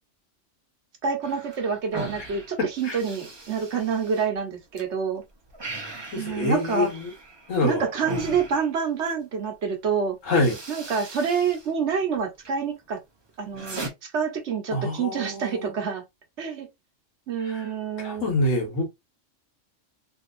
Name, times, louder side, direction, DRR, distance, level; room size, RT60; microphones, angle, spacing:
voice 1, 1.0-5.2 6.2-6.9 7.6-10.2 10.7-13.0 13.4-13.8 14.1-16.0 16.4-16.7 17.3-18.3, right 6 dB, 65° right, 1.2 m, -27 dB
sound 1, 1.2-4.8 5.2-9.2 9.9-10.0 10.3-11.7 12.0-12.5 13.0-13.9, right 2 dB, 25° right, 0.7 m, -39 dB
voice 2, 2.6-3.0 6.1-7.1 7.5-7.8 10.2-10.6 14.7-15.7 17.5-17.6 18.0-18.9, left 2 dB, 90° left, 1.6 m, -25 dB
3.3 x 2.7 x 2.5 m
omnidirectional pair, 1.3 m